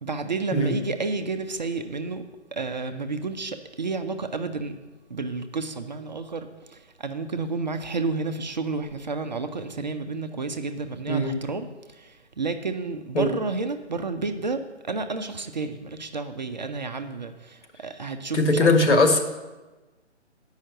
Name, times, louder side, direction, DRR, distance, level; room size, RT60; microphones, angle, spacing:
voice 1, 0.0-2.2 2.5-4.8 5.1-18.7, right 4 dB, 40° right, 7 dB, 0.5 m, -31 dB
voice 2, 18.3-19.2, left 2 dB, 75° left, 5 dB, 1.8 m, -19 dB
8.6 x 5.6 x 7.6 m, 1.1 s
figure-of-eight pair, 160°, 36 cm